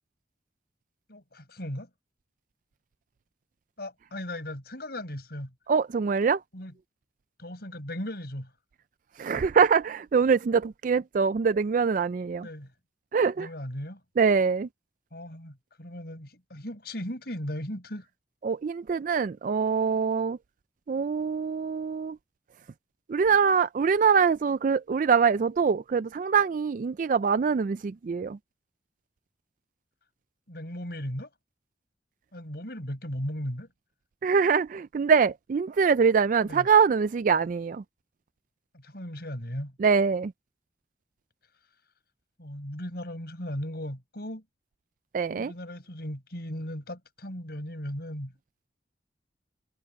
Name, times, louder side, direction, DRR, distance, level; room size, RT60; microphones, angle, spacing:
voice 1, 1.1-1.9 3.8-5.5 6.5-6.7 7.4-8.5 12.4-12.7 13.4-14.0 15.1-18.1 30.5-31.3 32.3-33.7 36.4-36.7 38.7-39.7 42.4-44.4 45.3-48.3, equal, 60° left, 5.9 m, -37 dB
voice 2, 5.7-6.4 9.2-12.5 13.1-13.5 14.2-14.7 18.4-20.4 20.9-22.2 23.1-28.4 34.2-37.8 39.8-40.3 45.1-45.5, right 6 dB, 45° right, 0.3 m, -24 dB
head